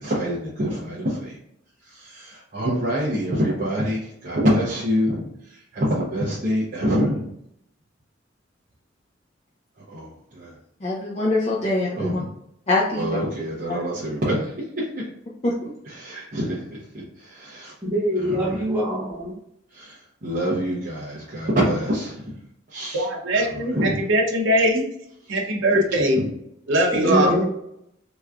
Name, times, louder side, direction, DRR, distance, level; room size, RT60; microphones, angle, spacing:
voice 1, 0.0-1.3 2.1-5.2 5.7-7.2 9.9-10.1 10.4-10.5 12.0-12.2 13.0-14.4 15.9-16.6 17.4-17.7 18.2-18.6 19.8-19.9 20.2-22.2 22.7-23.0 23.7-23.9 25.7-25.8 27.0-27.3, equal, 45° right, -8 dB, 0.8 m, -25 dB
voice 2, 10.8-12.2 12.7-13.0 13.7-13.8 15.4-15.5, left 2 dB, 35° left, -5 dB, 0.5 m, -23 dB
voice 3, 17.8-19.3 26.9-27.4, equal, 10° right, -7 dB, 1.3 m, -24 dB
voice 4, 22.9-24.8 25.3-26.3 26.7-27.4, equal, 80° right, 0 dB, 0.8 m, -21 dB
3.5 x 3.0 x 2.4 m, 0.76 s
head